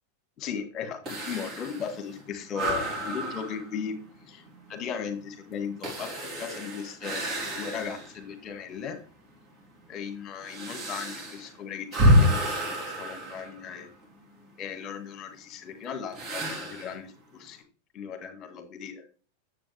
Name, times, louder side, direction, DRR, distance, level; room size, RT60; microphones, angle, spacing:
voice 1, 0.4-3.9 4.3-4.4 4.7-9.0 9.9-13.9 14.6-17.6 17.9-19.0, left 7 dB, 30° left, 6 dB, 2.1 m, -37 dB
sound 1, 1.1-8.2 8.7-8.8 9.5-14.1 16.1-17.0, equal, 30° right, 3.9 m, -29 dB
10.5 x 7.9 x 3.5 m, 0.39 s
figure-of-eight pair, 90°, 0 cm